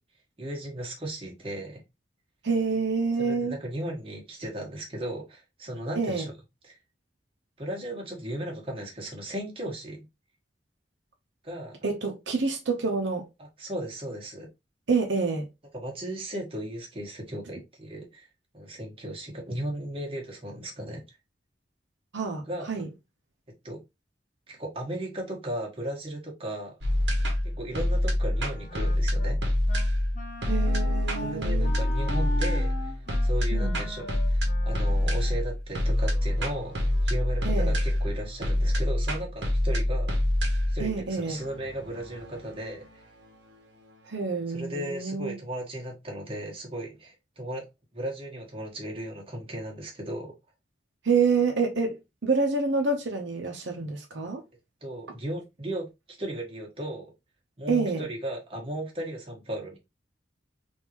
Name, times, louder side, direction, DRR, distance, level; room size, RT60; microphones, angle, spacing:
voice 1, 0.4-1.8 3.2-6.3 6.6-6.8 7.6-10.0 11.4-11.8 13.4-14.5 15.7-18.3 18.5-21.0 22.5-22.7 23.6-23.8 24.5-26.7 27.4-29.4 31.2-32.9 33.2-40.2 40.7-43.0 44.5-47.6 47.9-50.3 54.8-57.1 57.6-59.8, right 1 dB, 30° right, 1.3 m, -36 dB
voice 2, 2.4-3.5 6.0-6.2 11.8-13.3 14.9-15.5 22.1-22.9 30.5-31.8 33.5-33.8 37.4-37.7 40.8-41.4 44.1-45.4 51.0-54.4 57.7-58.0, right 4 dB, 85° right, 0.8 m, -27 dB
sound 1, 26.8-43.9, left 1 dB, 70° right, 1.1 m, -26 dB
Wind instrument woodwind instrument, 28.2-29.4 29.7-29.9 30.1-35.4, left 1 dB, 45° left, 0.8 m, -40 dB
3.6 x 2.7 x 2.9 m
head